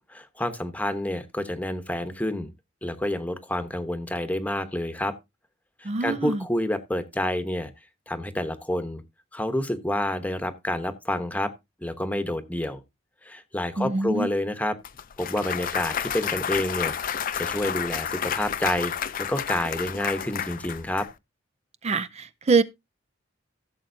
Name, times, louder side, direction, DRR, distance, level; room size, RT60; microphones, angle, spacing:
voice 1, 0.1-2.5 2.8-5.1 5.8-7.7 8.1-9.0 9.3-11.5 11.8-12.8 13.2-14.8 15.2-18.9 19.3-21.1, left 1 dB, 10° left, 1.0 m, -28 dB
voice 2, 5.9-6.4 13.8-14.3 21.8-22.6, right 4 dB, 35° right, 0.5 m, -24 dB
Clapping / Cheering / Applause, 14.8-21.1, left 8 dB, 45° left, 0.5 m, -30 dB
15.5 x 7.3 x 2.7 m
head